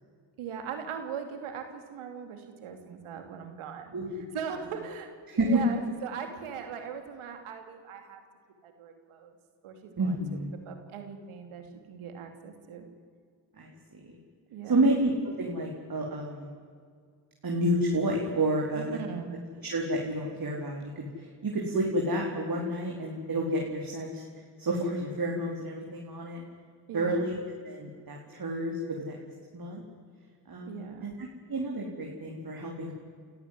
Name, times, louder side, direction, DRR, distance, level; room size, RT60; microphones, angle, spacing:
voice 1, 0.4-3.9 4.3-5.1 5.3-8.2 8.6-9.3 9.6-10.4 10.6-12.8 14.5-14.9 18.9-19.3 26.9-27.3 30.7-31.1, right 7 dB, 80° right, 6 dB, 3.0 m, -40 dB
voice 2, 3.9-4.2 5.4-5.6 10.0-10.5 13.6-14.1 14.6-16.5 17.4-19.0 19.6-24.2 24.6-26.4 26.9-27.4 27.6-29.2 29.5-29.8 30.5-32.9, right 1 dB, 45° right, -1 dB, 4.4 m, -30 dB
29.0 x 14.0 x 9.7 m, 2.1 s
supercardioid pair, 50°, 49 cm